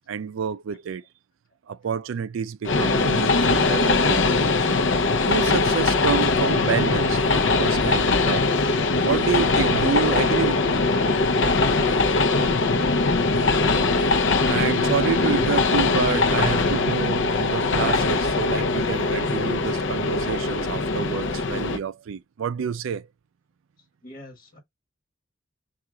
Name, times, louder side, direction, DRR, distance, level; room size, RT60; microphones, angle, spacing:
voice 1, 0.1-1.0 1.7-4.7 5.3-8.5 9.0-10.8 14.4-23.1, right 6 dB, 75° right, 0.4 m, -28 dB
Train, 2.6-21.8, left 3 dB, 65° left, 0.6 m, -21 dB
voice 2, 11.9-13.3 24.0-24.6, right 1 dB, 45° left, 1.4 m, -41 dB
5.8 x 2.4 x 3.7 m
head